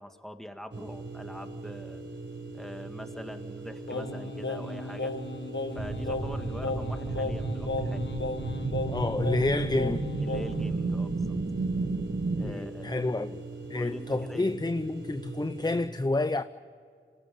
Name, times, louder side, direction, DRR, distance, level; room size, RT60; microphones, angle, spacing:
voice 1, 0.0-2.0 2.5-5.1 5.7-8.1 10.2-11.4 12.4-13.2 13.7-14.5, equal, ahead, 2.0 m, -43 dB
sound 1, 0.7-15.9, right 3 dB, 60° right, 4.0 m, -41 dB
Singing, 3.9-10.7, left 2 dB, 65° left, 1.2 m, -35 dB
sound 2, 5.8-12.5, right 3 dB, 85° right, 1.8 m, -32 dB
voice 2, 8.9-10.1 12.4-13.4 13.7-16.4, left 2 dB, 20° left, 0.6 m, -29 dB
27.0 x 18.5 x 9.4 m
wide cardioid pair, 55°, 20 cm